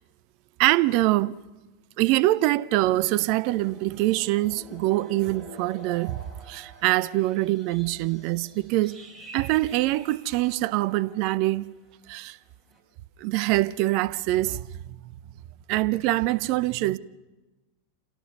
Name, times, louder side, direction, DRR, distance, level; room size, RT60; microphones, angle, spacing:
voice 1, 0.6-1.4 2.0-6.2 6.5-9.0 9.3-11.7 12.1-12.4 13.2-14.7 15.7-17.0, right 17 dB, 45° right, 0.6 m, -24 dB
sound 1, 3.1-11.7 12.0-12.3 12.7-12.8, right 2 dB, 5° right, 6.7 m, -48 dB
28.0 x 17.0 x 6.6 m
figure-of-eight pair, 90°, 0 cm